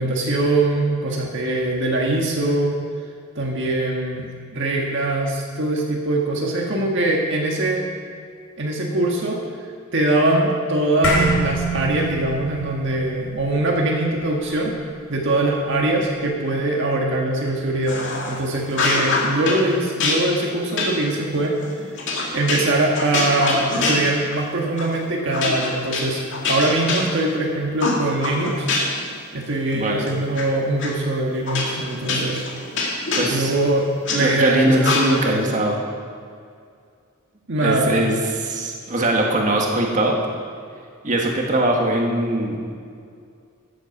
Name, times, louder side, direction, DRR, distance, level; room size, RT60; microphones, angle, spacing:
voice 1, 0.0-2.8 3.3-7.8 8.6-9.4 9.9-14.7 15.1-21.9 22.3-28.7 29.3-32.4 33.3-35.5 37.5-38.0, right 2 dB, 60° right, -1 dB, 1.5 m, -22 dB
sound 1, 11.0-15.7, right 1 dB, 80° left, 3.6 m, -26 dB
sound 2, 17.9-18.4 18.7-19.6 20.0-24.5 24.8-25.0 25.3-27.4 27.8-29.1 29.4-30.4 30.8-30.9 31.5-34.2 34.8-35.4, left 3 dB, 60° left, 2.4 m, -25 dB
voice 2, 29.7-30.1 33.2-33.6 34.2-35.8 37.6-40.2 41.0-42.6, right 1 dB, 35° right, -1 dB, 1.7 m, -21 dB
15.0 x 8.3 x 6.0 m, 2.2 s
head